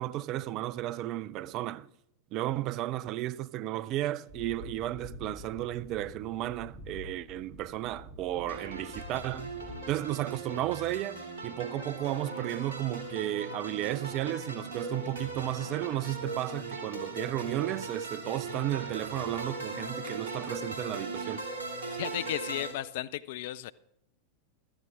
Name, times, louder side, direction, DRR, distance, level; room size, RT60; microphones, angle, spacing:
voice 1, 0.0-1.9 2.3-9.5 9.9-21.4, right 14 dB, 40° right, 0.4 m, -33 dB
sound 1, 4.3-10.0, left 1 dB, 20° right, 3.3 m, -47 dB
sound 2, 8.5-22.7, right 2 dB, 65° right, 2.7 m, -39 dB
voice 2, 21.9-23.7, left 14 dB, 50° left, 0.4 m, -35 dB
15.0 x 13.5 x 3.8 m
figure-of-eight pair, 90°, 0 cm